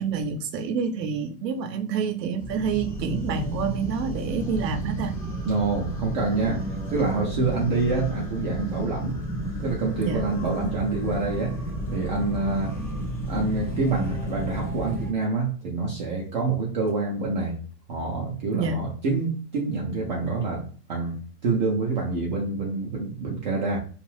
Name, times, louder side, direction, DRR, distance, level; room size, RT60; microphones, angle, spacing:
voice 1, 0.0-5.1 10.0-10.2 18.5-18.8, right 6 dB, 80° right, 7 dB, 0.6 m, -28 dB
sound 1, 2.4-15.1, right 1 dB, 15° left, 0.6 m, -32 dB
voice 2, 5.5-9.2 9.6-11.6 11.9-12.8 13.3-17.6 17.9-23.8, right 3 dB, 30° right, -2 dB, 0.4 m, -27 dB
2.6 x 2.3 x 3.1 m, 0.42 s
hypercardioid pair, 145°, 49 cm